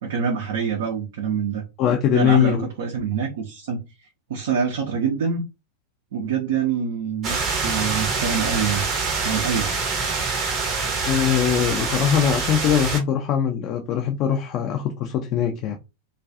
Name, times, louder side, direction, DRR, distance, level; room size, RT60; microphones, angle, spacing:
voice 1, 0.0-1.6 2.1-3.8 4.3-5.4 6.1-8.9 9.2-9.7, right 6 dB, 55° right, 0.6 m, -25 dB
voice 2, 1.8-2.6 11.1-15.8, left 9 dB, 40° left, 0.4 m, -21 dB
sound 1, 7.2-13.0, right 4 dB, 30° right, 0.9 m, -25 dB
2.4 x 2.3 x 2.5 m
figure-of-eight pair, 90°, 0 cm